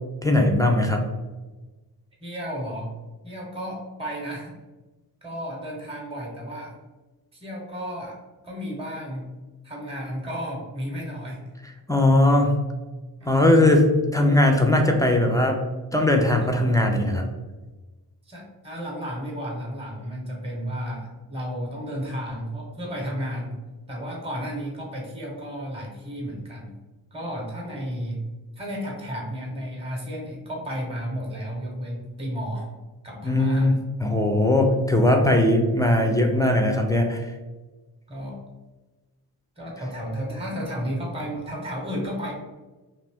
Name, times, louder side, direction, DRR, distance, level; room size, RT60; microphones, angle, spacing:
voice 1, 0.2-1.0 11.9-12.5 13.3-13.9 14.1-15.6 15.9-17.3 33.2-33.7 34.0-37.2, left 1 dB, 10° left, 2 dB, 0.3 m, -19 dB
voice 2, 2.2-2.9 3.2-4.6 5.2-6.7 7.3-8.2 8.4-9.3 9.6-11.4 13.2-13.3 16.4-16.5 18.3-23.5 23.9-26.8 27.1-28.2 28.6-32.7 33.0-33.7 38.1-38.4 39.6-42.3, equal, 15° right, -2 dB, 0.9 m, -33 dB
2.5 x 2.5 x 3.4 m, 1.2 s
cardioid pair, 75°, 42 cm